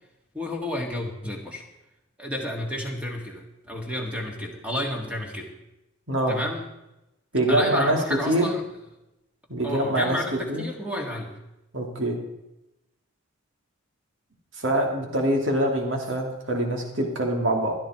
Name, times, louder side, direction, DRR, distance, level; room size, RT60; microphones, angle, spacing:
voice 1, 0.3-1.6 2.2-5.5 6.3-6.7 7.5-8.6 9.6-11.4, left 1 dB, 5° right, 1 dB, 2.0 m, -31 dB
voice 2, 7.3-8.0 8.3-8.5 9.5-10.6 11.7-12.2 14.6-17.8, right 1 dB, 60° right, 2 dB, 2.7 m, -24 dB
16.0 x 12.5 x 4.4 m, 0.92 s
head